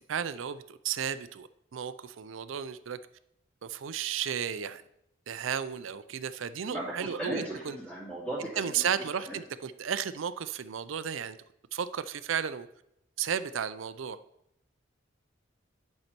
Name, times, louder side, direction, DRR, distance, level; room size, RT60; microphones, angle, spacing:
voice 1, 0.1-3.0 3.6-4.8 5.3-7.8 8.6-11.4 11.7-12.7 13.2-14.2, right 8 dB, 75° right, 13 dB, 0.5 m, -33 dB
voice 2, 6.7-9.4, right 1 dB, 5° left, -11 dB, 2.4 m, -38 dB
10.5 x 5.5 x 4.4 m, 0.78 s
head